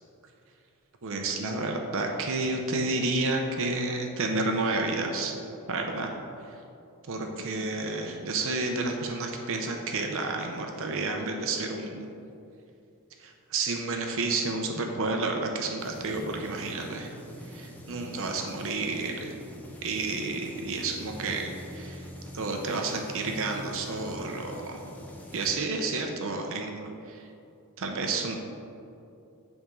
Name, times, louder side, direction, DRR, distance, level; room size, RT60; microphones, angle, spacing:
voice 1, 1.0-5.3 5.7-6.1 6.5-6.6 7.1-12.1 13.2-17.1 17.5-19.3 19.8-22.1 22.3-24.8 25.3-27.3 27.8-28.4, right 3 dB, 65° right, 3 dB, 0.7 m, -30 dB
sound 1, 15.8-25.5, equal, 5° left, 0.8 m, -44 dB
10.0 x 3.6 x 5.3 m, 2.7 s
head